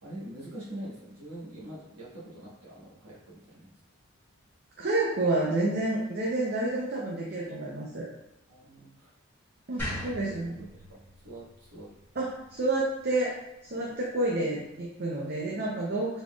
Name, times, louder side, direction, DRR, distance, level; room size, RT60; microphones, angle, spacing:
voice 1, 0.0-3.7 8.5-9.1 10.0-10.1 10.5-12.0 13.8-13.9, right 1 dB, 85° right, -8 dB, 1.3 m, -44 dB
voice 2, 4.8-8.1 9.7-10.5 12.2-13.4 13.6-16.2, right 2 dB, 45° right, -4 dB, 0.6 m, -29 dB
sound 1, 9.8-12.9, left 1 dB, 10° left, 1.3 m, -40 dB
4.1 x 3.7 x 2.3 m, 0.84 s
head